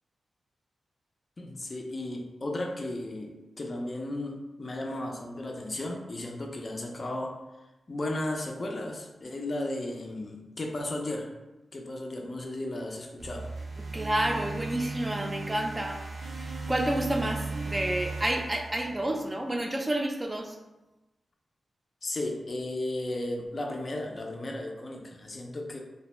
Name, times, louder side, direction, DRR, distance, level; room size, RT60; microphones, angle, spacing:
voice 1, 1.4-7.4 7.9-11.3 11.7-13.5 22.0-25.8, left 1 dB, 45° left, 2 dB, 0.4 m, -35 dB
sound 1, 13.2-19.4, right 3 dB, 75° right, 0.5 m, -37 dB
voice 2, 13.9-16.0 16.3-20.6, right 1 dB, 20° right, 2 dB, 0.4 m, -30 dB
2.5 x 2.1 x 3.0 m, 1.0 s
cardioid pair, 70°, 0 cm